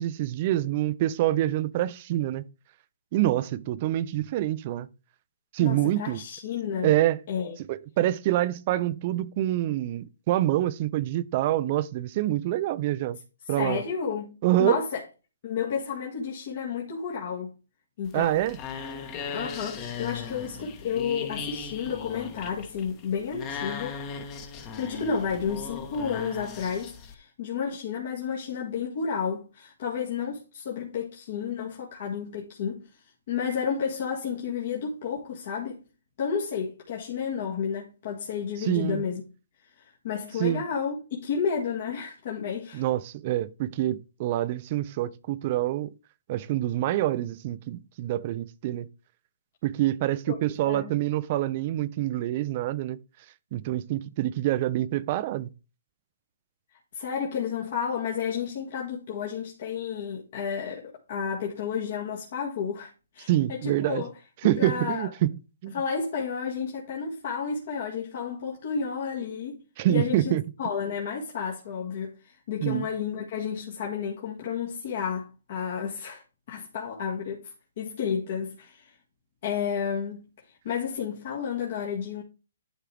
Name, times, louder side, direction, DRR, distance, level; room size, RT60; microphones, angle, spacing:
voice 1, 0.0-2.4 3.1-4.9 5.5-6.2 6.8-7.2 7.7-13.2 13.5-13.8 14.4-14.8 18.1-18.6 38.6-39.0 40.4-40.6 42.7-45.9 46.3-48.9 49.6-53.0 53.5-55.5 63.3-64.0 64.4-65.3 65.6-65.7 69.8-70.4 72.6-72.9, right 14 dB, 40° right, 0.5 m, -26 dB
voice 2, 5.6-6.9 7.3-7.6 13.5-15.0 15.4-17.5 18.0-18.4 19.3-24.0 24.8-32.9 33.3-35.8 36.2-39.2 39.8-42.9 50.3-50.4 50.6-50.9 56.9-64.1 64.6-65.1 65.7-69.6 69.9-70.3 70.6-76.2 76.5-78.9 79.4-80.3 80.6-82.2, left 7 dB, 50° left, 1.9 m, -31 dB
sound 1, 18.0-27.1, left 5 dB, 25° left, 1.3 m, -38 dB
11.5 x 4.5 x 3.4 m
hypercardioid pair, 150°, 0 cm